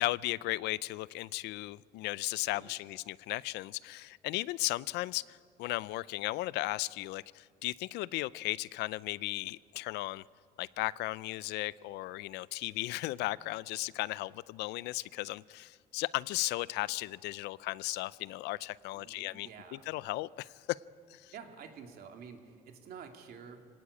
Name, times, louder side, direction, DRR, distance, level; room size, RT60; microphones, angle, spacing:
voice 1, 0.0-10.2 10.6-20.8 21.1-21.3, left 18 dB, 90° left, 20 dB, 0.5 m, -36 dB
voice 2, 2.5-2.9 18.9-20.0 21.3-23.7, right 6 dB, 65° right, 4 dB, 2.9 m, -50 dB
25.0 x 18.5 x 8.4 m, 2.1 s
cardioid pair, 110°, 17 cm